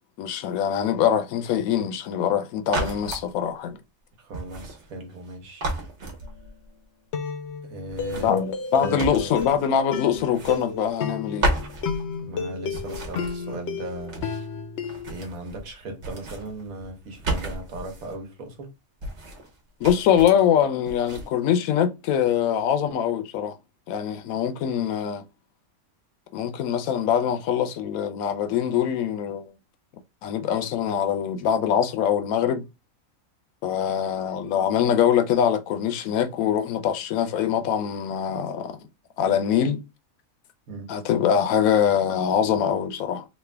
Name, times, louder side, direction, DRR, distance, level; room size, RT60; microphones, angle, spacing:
voice 1, 0.2-3.8 8.2-11.5 19.8-23.6 23.9-25.2 26.3-29.5 30.2-32.7 33.6-38.8 39.2-39.8 40.9-43.3, left 9 dB, 85° left, 1.0 m, -23 dB
sound 1, 2.6-3.3 4.3-5.3 5.6-6.7 7.9-9.8 10.1-11.1 11.4-12.4 12.7-14.5 14.8-15.7 16.0-18.1 19.0-19.5 19.8-20.5 20.9-21.3, right 2 dB, 60° right, 1.2 m, -33 dB
voice 2, 4.2-5.7 7.7-8.3 8.8-9.4 12.2-14.3 15.1-18.7 40.7-40.9, right 2 dB, 80° right, 1.3 m, -37 dB
sound 2, 6.2-6.5 7.1-15.1, left 5 dB, 65° left, 0.7 m, -32 dB
3.2 x 2.4 x 3.3 m
omnidirectional pair, 1.4 m